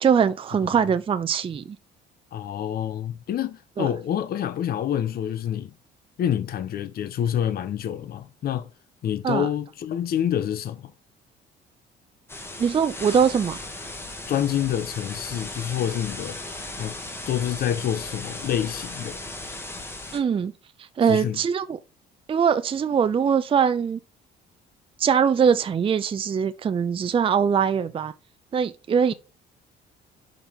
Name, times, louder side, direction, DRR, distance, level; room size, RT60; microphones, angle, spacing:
voice 1, 0.0-1.8 3.8-3.9 9.2-9.5 12.6-13.6 20.1-20.5 20.8-21.8 22.3-24.0 25.0-28.1 28.5-29.1, right 7 dB, 30° right, 0.5 m, -22 dB
voice 2, 2.3-5.7 6.2-8.7 9.0-10.9 14.3-16.4 16.8-17.0 17.3-19.2 21.0-21.4, left 10 dB, 55° left, 0.8 m, -27 dB
sound 1, 12.3-20.2, left 2 dB, 10° left, 1.8 m, -37 dB
5.5 x 5.3 x 4.4 m
cardioid pair, 120°, 19 cm